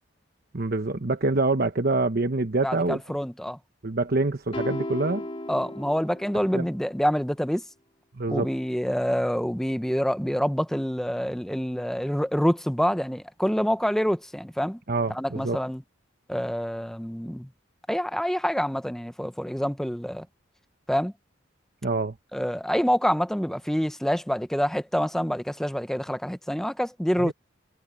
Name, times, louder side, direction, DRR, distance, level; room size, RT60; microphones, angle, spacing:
voice 1, 0.5-3.0 3.8-5.2 6.5-6.7 8.2-8.5 14.9-15.6 21.8-22.1 27.2-27.3, right 3 dB, 50° right, 1.1 m, -25 dB
voice 2, 2.6-3.6 5.5-7.6 8.3-14.8 15.1-15.8 16.3-17.5 17.9-20.3 20.9-21.1 22.3-27.3, equal, ahead, 0.9 m, -26 dB
sound 1, 4.5-6.9, left 1 dB, 30° left, 4.5 m, -35 dB
head